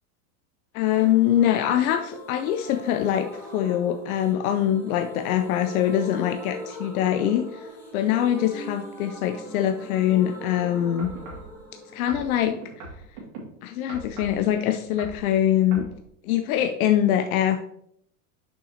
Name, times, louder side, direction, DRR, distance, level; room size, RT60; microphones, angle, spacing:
voice 1, 0.7-11.1 11.9-12.6 13.6-15.9 16.2-17.6, left 11 dB, 75° left, 7 dB, 0.7 m, -23 dB
sound 1, 0.9-14.5 14.7-14.8 15.1-15.2, equal, 5° left, 2.3 m, -42 dB
sound 2, 11.0-11.5 12.1-13.4 13.9-14.4 14.8-15.2 15.7-15.9 16.6-16.7, right 3 dB, 70° right, 2.4 m, -40 dB
7.0 x 5.7 x 2.8 m, 0.72 s
hypercardioid pair, 105°, 43 cm